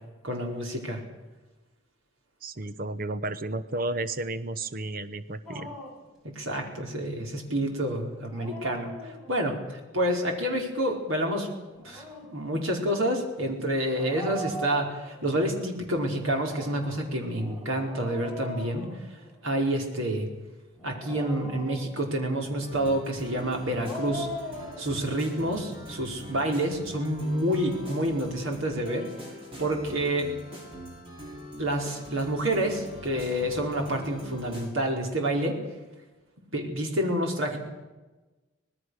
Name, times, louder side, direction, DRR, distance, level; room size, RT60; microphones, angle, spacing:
voice 1, 0.2-1.0 6.3-11.5 11.8-12.0 12.3-20.3 20.8-24.3 24.8-29.1 29.6-30.3 31.6-35.5 36.5-37.6, right 1 dB, 80° right, 1 dB, 4.9 m, -28 dB
voice 2, 2.4-5.8, right 2 dB, 45° right, 12 dB, 0.9 m, -32 dB
Dog, 5.5-6.1 8.2-9.6 11.7-12.4 13.9-15.4 16.3-19.5 20.8-22.2 23.5-24.9, left 1 dB, ahead, 5.0 m, -40 dB
sound 1, 22.6-34.7, equal, 25° right, 6.3 m, -43 dB
25.5 x 19.5 x 6.6 m, 1.2 s
head